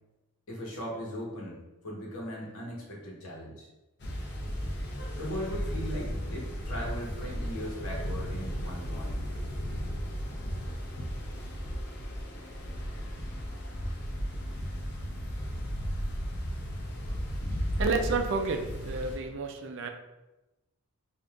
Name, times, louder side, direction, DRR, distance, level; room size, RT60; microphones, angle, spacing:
voice 1, 0.5-1.6 1.8-3.7 5.1-9.2, equal, 70° left, -3 dB, 1.1 m, -38 dB
sound 1, 4.0-19.2, equal, 50° left, 0.6 m, -35 dB
voice 2, 17.5-19.9, right 4 dB, 55° right, 5 dB, 0.4 m, -31 dB
5.1 x 2.5 x 2.4 m, 1.0 s
head